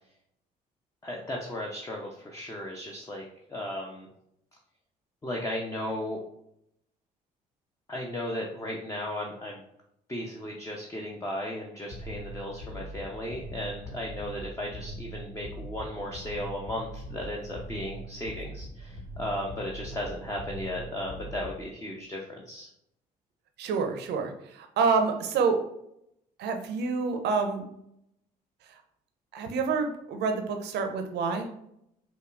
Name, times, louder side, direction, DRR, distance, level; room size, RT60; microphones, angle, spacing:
voice 1, 1.0-3.2 3.5-4.1 5.2-6.2 7.9-9.6 10.1-22.7, left 1 dB, 15° left, -1 dB, 0.6 m, -35 dB
sound 1, 11.9-21.6, right 1 dB, 85° left, 1.0 m, -41 dB
voice 2, 23.6-25.6 26.4-27.6 29.3-31.5, right 5 dB, 60° right, 5 dB, 0.6 m, -27 dB
5.2 x 2.2 x 2.4 m, 0.77 s
figure-of-eight pair, 45°, 20 cm